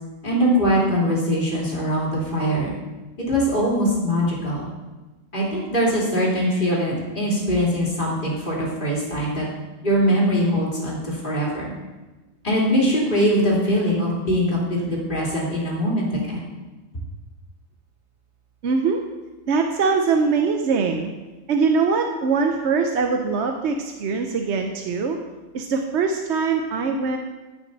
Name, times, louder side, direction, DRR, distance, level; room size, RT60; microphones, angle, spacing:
voice 1, 0.2-2.7 3.3-4.7 5.3-9.5 9.8-11.7 12.4-16.4, equal, 40° left, -5 dB, 3.0 m, -22 dB
voice 2, 18.6-19.0 19.5-21.1 21.5-25.2 25.5-27.2, right 5 dB, 65° right, 4 dB, 0.9 m, -22 dB
16.0 x 6.2 x 4.0 m, 1.2 s
omnidirectional pair, 1.3 m